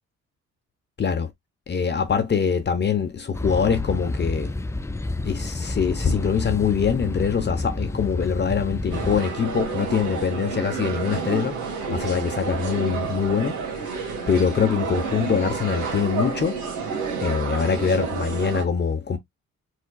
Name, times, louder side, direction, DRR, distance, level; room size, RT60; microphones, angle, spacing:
voice 1, 1.0-1.3 1.7-4.5 5.2-16.6 17.2-19.2, left 6 dB, 35° left, 0.8 m, -24 dB
sound 1, 3.3-9.2, left 2 dB, 10° left, 0.4 m, -29 dB
sound 2, 8.9-18.6, right 5 dB, 90° right, 2.4 m, -30 dB
4.6 x 4.3 x 2.2 m
cardioid pair, 90°, 30 cm